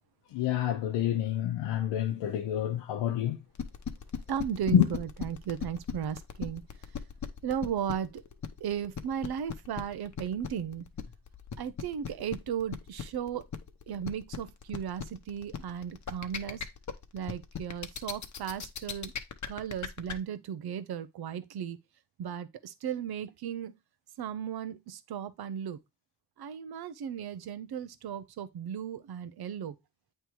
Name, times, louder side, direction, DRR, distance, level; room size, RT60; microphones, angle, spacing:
voice 1, 0.3-3.4 4.7-4.8, left 12 dB, 85° left, 0.9 m, -27 dB
sound 1, 3.5-20.1, left 7 dB, 45° left, 1.0 m, -37 dB
voice 2, 4.3-6.6 7.4-8.2 8.6-10.8 11.6-13.5 13.9-16.6 17.1-19.1 19.5-21.8 22.2-23.7 24.2-25.8 26.4-29.8, right 8 dB, 65° right, 0.9 m, -35 dB
8.4 x 3.4 x 4.5 m
cardioid pair, 70°, 41 cm